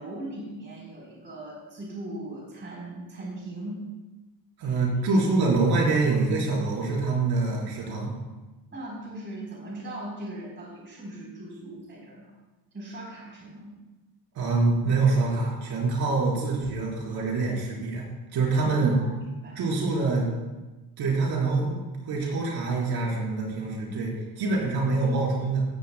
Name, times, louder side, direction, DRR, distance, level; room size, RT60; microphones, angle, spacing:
voice 1, 0.0-3.9 4.6-4.8 8.7-12.3 12.7-13.8 18.6-19.1 19.4-19.6, right 1 dB, 30° right, -4 dB, 4.0 m, -39 dB
voice 2, 4.6-8.1 14.3-18.1 18.3-19.0 19.5-20.3 21.0-25.6, right 3 dB, 75° right, -4 dB, 4.5 m, -25 dB
15.5 x 15.0 x 2.3 m, 1.1 s
cardioid pair, 165°, 38 cm